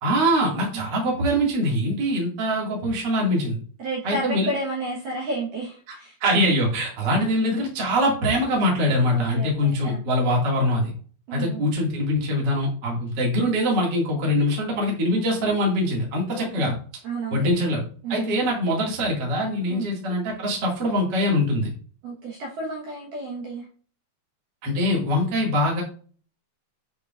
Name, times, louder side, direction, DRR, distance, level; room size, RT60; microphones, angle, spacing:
voice 1, 0.0-3.6 4.0-4.5 5.9-6.0 6.2-10.9 11.3-16.7 17.3-17.8 18.1-21.7 24.6-25.8, equal, 45° right, -2 dB, 1.4 m, -23 dB
voice 2, 3.8-6.2 9.1-10.0 11.3-11.7 16.3-16.8 17.0-17.5 18.0-18.5 19.7-19.9 22.0-23.7, right 2 dB, 70° right, -3 dB, 2.2 m, -31 dB
8.3 x 4.7 x 2.4 m, 0.43 s
omnidirectional pair, 5.3 m